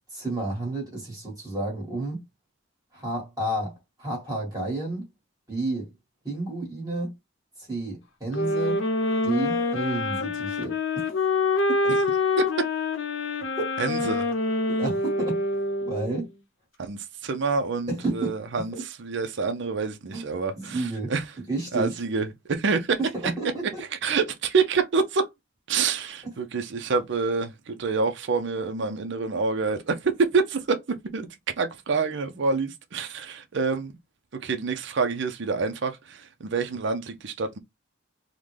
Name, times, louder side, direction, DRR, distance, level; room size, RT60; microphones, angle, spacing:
voice 1, 0.1-2.2 2.9-5.1 5.5-5.9 6.2-7.1 7.6-8.8 9.2-10.8 11.7-12.0 13.6-13.7 14.7-15.4 15.8-16.3 17.9-18.4 18.7-18.8 20.1-20.2 20.5-21.1 21.5-22.0 23.0-23.8, right 2 dB, 20° right, 1.4 m, -31 dB
sound 1, 8.3-16.3, left 2 dB, 75° left, 0.8 m, -26 dB
voice 2, 12.4-12.7 13.8-14.2 16.8-21.2 21.7-23.0 24.0-25.3 25.7-33.9 34.4-37.6, right 4 dB, 60° right, 0.5 m, -27 dB
3.7 x 2.2 x 3.2 m
head